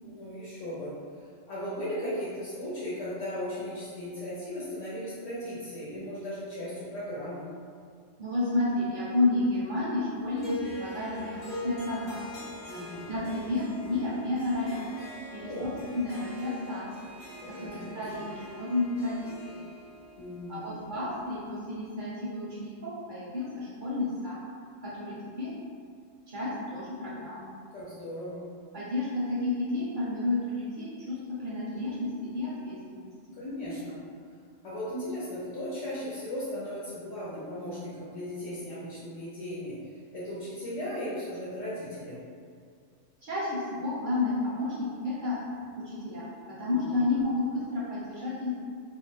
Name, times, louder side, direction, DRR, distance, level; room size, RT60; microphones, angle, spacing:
voice 1, 0.0-7.5 12.7-13.1 15.4-15.7 17.4-18.2 20.2-20.7 27.7-28.4 33.4-34.0 34.6-42.2 46.7-47.1, equal, 70° left, -9 dB, 1.0 m, -37 dB
voice 2, 8.2-12.2 13.1-15.0 15.3-16.9 17.6-19.7 20.5-24.4 24.8-25.5 26.3-27.5 28.7-33.1 43.2-48.5, left 2 dB, 55° right, -8 dB, 0.6 m, -31 dB
Harp, 10.4-21.7, left 1 dB, 50° left, 0.6 m, -43 dB
2.5 x 2.1 x 3.2 m, 2.1 s
omnidirectional pair, 1.3 m